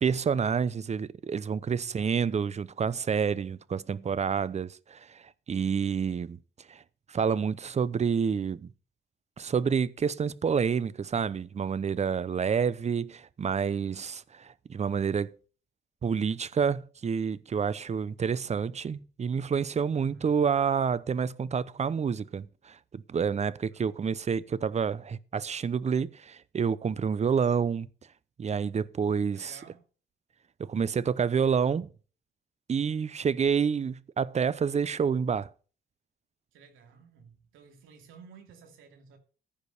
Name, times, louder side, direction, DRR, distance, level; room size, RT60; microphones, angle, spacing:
voice 1, 0.0-6.4 6.7-6.8 7.1-8.7 9.4-15.3 16.0-27.9 28.4-29.6 30.6-31.9 32.7-35.5, right 6 dB, 35° right, 0.7 m, -28 dB
voice 2, 1.8-2.3 20.0-20.2 23.7-23.8 29.3-29.9 36.5-39.2, right 6 dB, 90° right, 2.7 m, -53 dB
15.0 x 5.2 x 6.7 m
cardioid pair, 90°, 20 cm